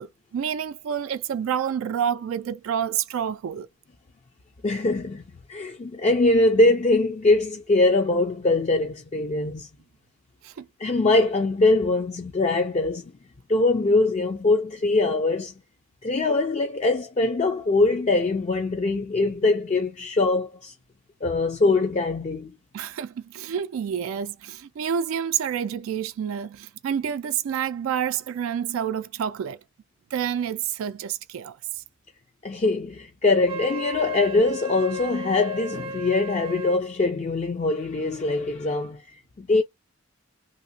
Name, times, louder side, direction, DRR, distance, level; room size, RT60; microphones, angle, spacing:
voice 1, 0.0-3.7 10.4-10.7 22.7-29.6 30.1-31.8, right 8 dB, 85° right, 0.3 m, -28 dB
voice 2, 4.6-5.2 5.5-9.7 10.8-13.1 13.5-15.5 16.0-20.7 21.2-22.6 32.4-39.0 39.4-39.6, left 2 dB, 35° left, 0.4 m, -22 dB
Wind instrument woodwind instrument, 33.5-36.8, right 1 dB, 30° right, 0.5 m, -35 dB
2.8 x 2.7 x 2.6 m
head